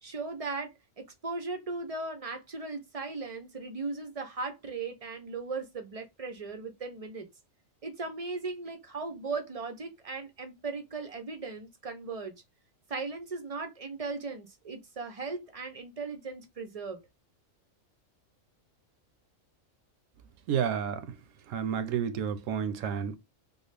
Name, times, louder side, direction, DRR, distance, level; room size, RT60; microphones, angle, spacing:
voice 1, 0.0-7.3 7.8-12.3 12.9-17.0, right 3 dB, 50° right, 0.4 m, -37 dB
voice 2, 20.5-21.0 21.5-23.2, right 8 dB, 75° right, 1.0 m, -30 dB
3.7 x 2.0 x 3.2 m
omnidirectional pair, 1.4 m